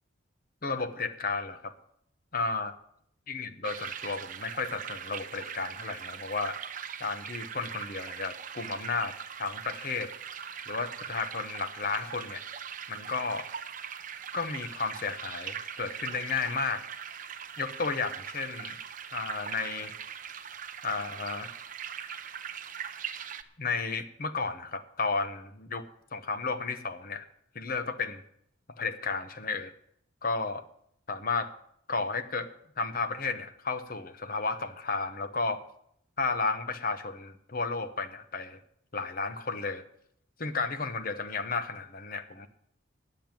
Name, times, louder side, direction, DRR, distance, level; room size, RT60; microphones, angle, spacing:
voice 1, 0.6-1.7 2.3-2.7 3.3-6.6 7.0-9.1 9.4-10.1 10.7-12.4 12.9-13.5 14.3-16.8 17.6-18.8 19.1-19.9 20.8-21.5 23.6-25.8 26.1-27.3 27.5-28.2 28.8-29.7 30.2-30.6 31.1-31.5 31.9-32.5 32.8-35.6 36.2-38.6 38.9-39.8 40.4-42.5, left 4 dB, 45° left, 11 dB, 0.9 m, -33 dB
sound 1, 3.6-23.4, right 8 dB, 40° right, 0.7 m, -41 dB
10.5 x 7.7 x 9.0 m, 0.71 s
head